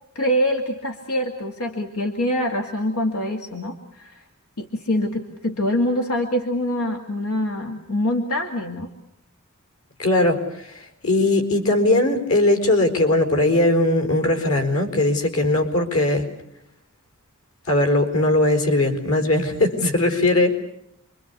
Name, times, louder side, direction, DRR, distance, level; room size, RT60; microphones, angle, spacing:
voice 1, 0.1-4.2 4.6-8.9, left 1 dB, 85° left, 3 dB, 2.4 m, -25 dB
voice 2, 10.0-16.3 17.7-20.6, left 2 dB, 70° left, 6 dB, 4.6 m, -19 dB
28.5 x 24.0 x 8.3 m, 0.76 s
head